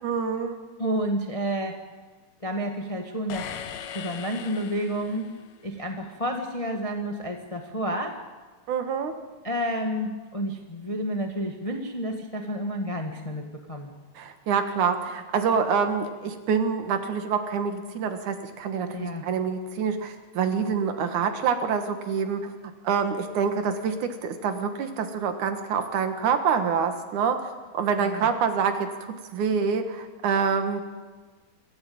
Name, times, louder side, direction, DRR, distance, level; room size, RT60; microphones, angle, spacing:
voice 1, 0.0-0.6 8.7-9.1 14.2-27.4 27.7-30.8, right 6 dB, 70° right, 7 dB, 2.9 m, -26 dB
voice 2, 0.8-1.8 2.4-3.5 3.9-5.3 5.6-8.2 9.4-14.0 18.9-19.2 28.0-28.3, equal, 30° left, 3 dB, 0.6 m, -30 dB
sound 1, 3.3-5.5, left 8 dB, 90° left, 2.8 m, -39 dB
24.5 x 13.5 x 8.7 m, 1.4 s
omnidirectional pair, 3.8 m